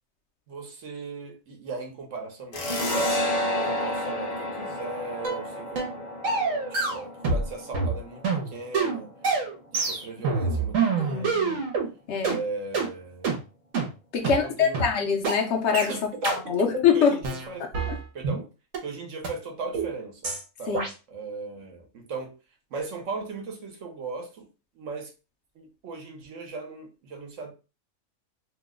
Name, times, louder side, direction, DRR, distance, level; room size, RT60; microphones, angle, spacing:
voice 1, 0.5-2.6 2.8-3.1 3.7-6.0 6.9-9.1 9.7-11.6 12.2-13.4 14.2-14.8 15.9-16.0 16.9-17.6 18.1-18.4 18.8-20.2 20.6-22.3 22.7-24.5 24.8-25.1 25.5-27.5, right 4 dB, 75° right, 1.2 m, -37 dB
sound 1, 2.5-9.7, left 1 dB, 40° left, 0.7 m, -31 dB
sound 2, 5.2-5.4 5.8-6.0 6.2-7.5 7.7-11.9 12.2-12.4 12.7-12.9 13.2-13.4 13.7-13.9 14.2-14.4 14.7-14.9 15.2-15.4 15.7-15.9 16.2-16.4 16.7-16.9 17.2-18.4 18.7-18.8 19.2-19.3 19.7-19.9 20.2-20.4 20.7-20.9, right 4 dB, 90° right, 1.2 m, -26 dB
voice 2, 11.0-11.6 12.1-12.4 14.1-15.9 16.2-17.2 17.9-18.0 20.7-20.8, left 6 dB, 65° left, 0.9 m, -24 dB
2.9 x 2.0 x 3.5 m
omnidirectional pair, 1.3 m